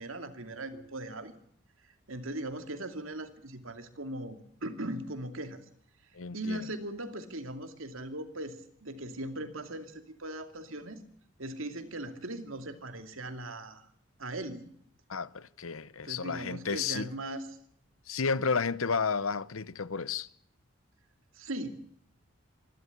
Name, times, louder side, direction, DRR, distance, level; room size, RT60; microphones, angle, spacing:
voice 1, 0.0-1.3 2.1-5.6 6.3-11.0 11.4-13.9 14.2-14.7 16.0-17.4 21.3-21.7, right 1 dB, 75° right, 2.6 m, -39 dB
voice 2, 6.1-6.6 15.1-17.1 18.1-20.3, left 5 dB, 85° left, 0.9 m, -32 dB
25.5 x 13.0 x 8.4 m
head